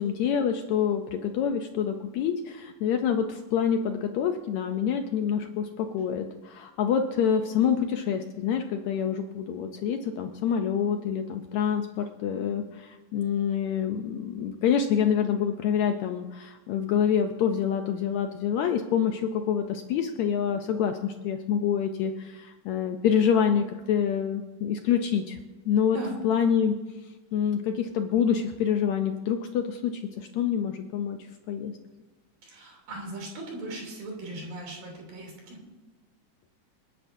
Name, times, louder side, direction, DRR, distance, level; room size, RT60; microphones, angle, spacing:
voice 1, 0.0-25.4 25.7-26.0 26.2-26.8 27.0-31.2 31.5-31.7, left 8 dB, 75° left, 6 dB, 1.7 m, -27 dB
voice 2, 32.4-35.6, right 2 dB, 80° right, -1 dB, 4.7 m, -38 dB
28.5 x 9.9 x 2.7 m, 1.2 s
omnidirectional pair, 3.8 m